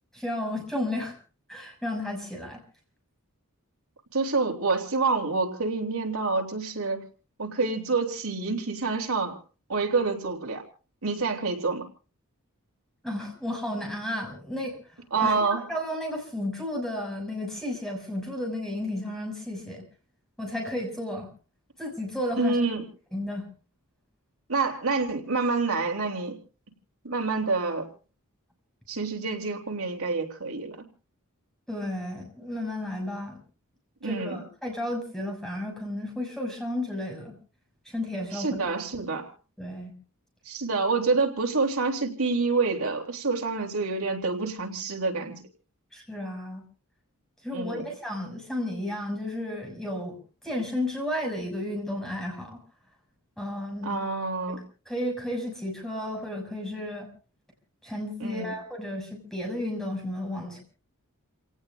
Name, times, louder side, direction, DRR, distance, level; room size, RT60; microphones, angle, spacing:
voice 1, 0.1-1.2 1.5-2.6 13.0-14.8 15.1-19.8 20.4-21.3 21.8-22.6 23.1-23.5 31.7-33.4 34.0-37.3 37.8-38.6 39.6-39.9 45.9-46.6 47.4-50.2 50.4-52.6 53.4-54.0 54.9-57.1 57.8-60.6, left 1 dB, ahead, 1 dB, 6.4 m, -33 dB
voice 2, 4.1-7.0 7.4-9.3 9.7-10.6 11.0-11.9 15.1-15.6 22.4-22.9 24.5-26.4 27.0-27.9 28.9-30.8 34.0-34.4 38.3-39.3 40.4-45.4 47.5-47.8 53.8-54.6 58.2-58.5, right 3 dB, 70° right, 2 dB, 3.1 m, -27 dB
29.5 x 18.0 x 2.6 m, 0.36 s
head